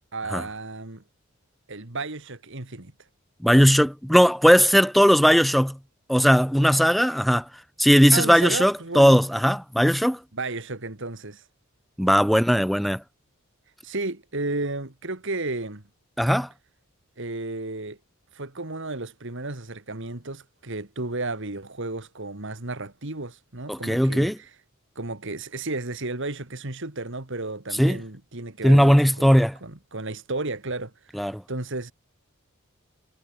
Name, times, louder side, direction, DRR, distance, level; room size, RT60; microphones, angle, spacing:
voice 1, 0.1-1.0 1.7-2.9 8.1-9.2 10.3-11.4 13.8-15.8 17.2-18.0 18.3-24.5 25.0-31.9, right 2 dB, 60° right, 2.4 m, -33 dB
voice 2, 3.4-5.8 6.1-7.4 7.8-10.2 12.0-13.0 16.2-16.5 23.7-24.4 27.8-28.0 28.6-29.6 31.1-31.4, equal, ahead, 0.6 m, -18 dB
head